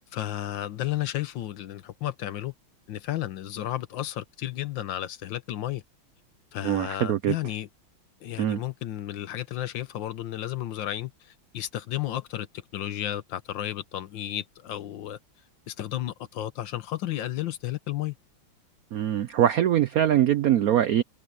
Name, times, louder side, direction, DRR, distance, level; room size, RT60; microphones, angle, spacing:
voice 1, 0.0-2.5 2.9-5.8 6.5-7.7 8.2-15.2 15.7-18.2, left 13 dB, 70° left, 1.5 m, -33 dB
voice 2, 6.6-7.3 8.4-8.6 18.9-21.0, right 11 dB, 85° right, 0.7 m, -23 dB
omnidirectional pair, 2.3 m